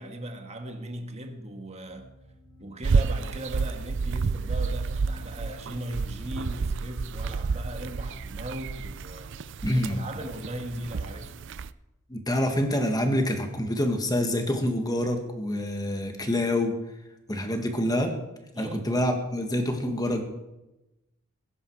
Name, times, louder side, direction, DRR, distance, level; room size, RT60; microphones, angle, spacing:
voice 1, 0.0-2.1 2.6-9.3 9.7-11.4 18.5-18.9, right 1 dB, 30° right, 1.8 m, -38 dB
sound 1, 1.9-11.5, left 1 dB, 75° left, 3.4 m, -52 dB
sound 2, 2.8-11.7, right 4 dB, 55° right, 0.5 m, -30 dB
voice 2, 9.6-10.0 12.1-16.8 17.3-18.1 18.6-20.2, left 1 dB, 15° left, 1.9 m, -26 dB
21.0 x 11.0 x 4.9 m
head